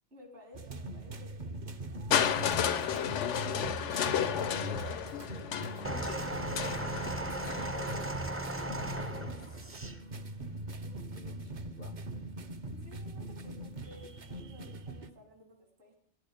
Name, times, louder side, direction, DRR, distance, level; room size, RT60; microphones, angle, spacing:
voice 1, 0.1-1.5 12.7-15.9, left 1 dB, 70° right, 1 dB, 3.8 m, -55 dB
sound 1, 0.5-15.1, right 2 dB, 45° right, 0.8 m, -42 dB
Crushing, 2.1-8.0 9.0-9.1, left 8 dB, 80° left, 1.1 m, -32 dB
voice 2, 2.4-8.1 8.7-9.8 11.2-12.0, left 5 dB, 50° left, 11 dB, 0.7 m, -46 dB
sound 2, 5.8-10.0 10.9-11.0, right 1 dB, 15° right, 0.5 m, -37 dB
15.0 x 11.0 x 5.1 m, 0.66 s
omnidirectional pair, 1.2 m